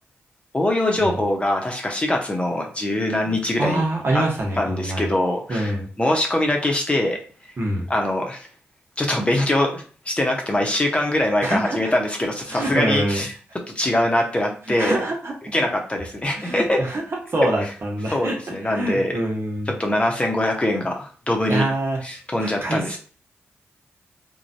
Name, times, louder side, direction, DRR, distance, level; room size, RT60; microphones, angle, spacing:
voice 1, 0.5-3.8 4.1-4.2 4.6-7.2 7.9-8.5 9.0-13.3 13.7-15.0 15.5-16.8 18.1-19.1 19.8-21.6 22.0-23.0, left 1 dB, 25° left, 1 dB, 0.8 m, -23 dB
voice 2, 3.3-5.1 5.5-5.9 7.6-7.9 11.4-11.9 12.5-13.2 14.8-15.3 16.4-17.0 17.3-18.4 18.7-19.7 21.5-22.0 22.4-23.0, right 1 dB, 55° right, -1 dB, 1.0 m, -25 dB
3.1 x 2.2 x 2.7 m, 0.40 s
supercardioid pair, 40°, 5 cm